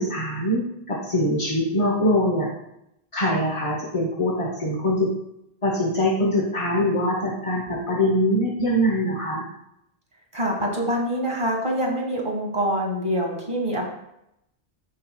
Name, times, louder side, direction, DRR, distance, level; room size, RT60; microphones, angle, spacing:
voice 1, 0.0-2.5 3.1-5.1 5.6-9.4, equal, 30° left, -1 dB, 1.0 m, -23 dB
voice 2, 10.3-13.8, equal, 25° right, -2 dB, 1.9 m, -25 dB
15.0 x 5.5 x 2.3 m, 0.83 s
omnidirectional pair, 1.1 m